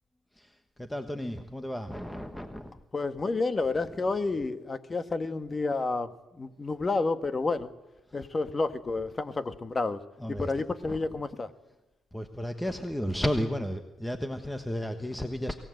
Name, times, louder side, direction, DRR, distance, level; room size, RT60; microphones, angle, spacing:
voice 1, 0.3-2.7 10.2-10.5 10.8-11.0 12.1-15.5, equal, 5° left, 1.3 m, -33 dB
voice 2, 2.9-7.7 8.1-10.0 10.3-11.5, left 3 dB, 30° left, 1.5 m, -30 dB
23.5 x 18.0 x 7.9 m
cardioid pair, 90°, 0 cm